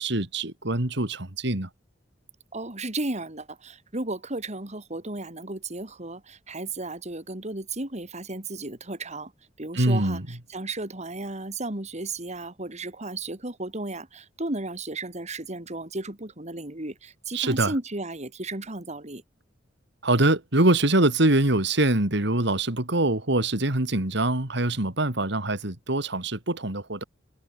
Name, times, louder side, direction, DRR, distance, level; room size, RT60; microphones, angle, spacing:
voice 1, 0.0-1.7 9.7-10.3 17.3-17.7 20.0-27.0, right 2 dB, 65° right, 3.2 m, -24 dB
voice 2, 2.5-9.3 9.6-19.2, right 2 dB, 40° right, 3.7 m, -34 dB
head